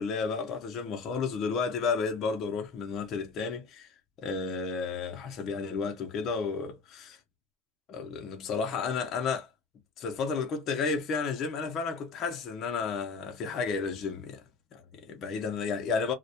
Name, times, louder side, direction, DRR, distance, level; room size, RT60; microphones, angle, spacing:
voice 1, 0.0-3.9 4.2-7.2 7.9-9.5 10.0-14.4 14.7-16.1, left 5 dB, 35° left, 0.5 m, -32 dB
2.2 x 2.1 x 2.7 m
supercardioid pair, 155°, 0 cm